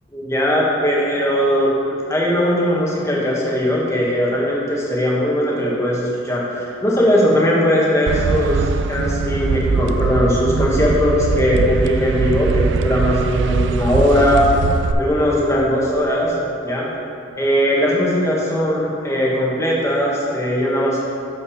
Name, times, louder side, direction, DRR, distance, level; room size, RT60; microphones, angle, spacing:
voice 1, 0.1-14.4 15.0-16.3 16.6-16.9 17.4-21.0, equal, 15° left, -4 dB, 1.2 m, -19 dB
sound 1, 8.1-14.9, right 4 dB, 60° right, 0.3 m, -21 dB
7.0 x 5.7 x 4.9 m, 2.6 s
head